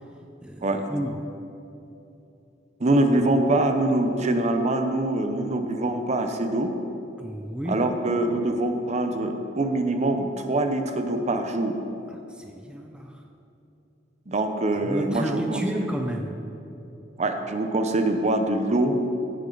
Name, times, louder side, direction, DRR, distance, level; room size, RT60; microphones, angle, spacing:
voice 1, 0.4-1.3 7.2-7.9 12.1-13.2 14.8-16.4, equal, 5° right, 2 dB, 0.5 m, -32 dB
voice 2, 2.8-6.7 7.7-11.8 14.3-15.9 17.2-19.0, right 2 dB, 40° right, 6 dB, 0.7 m, -24 dB
15.5 x 6.8 x 3.9 m, 2.9 s
head